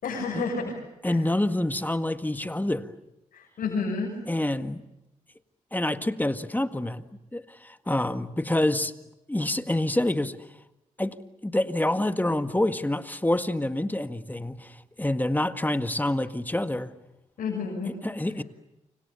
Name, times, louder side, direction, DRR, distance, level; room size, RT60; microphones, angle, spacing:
voice 1, 0.0-1.2 3.3-4.1 17.4-17.9, left 4 dB, 80° left, -2 dB, 6.7 m, -30 dB
voice 2, 1.0-2.9 4.3-4.8 5.7-7.0 7.3-8.9 9.3-10.4 11.0-11.2 11.4-16.9 18.0-18.4, left 1 dB, 10° left, 9 dB, 1.8 m, -27 dB
29.5 x 26.5 x 7.1 m, 0.95 s
supercardioid pair, 50°, 14 cm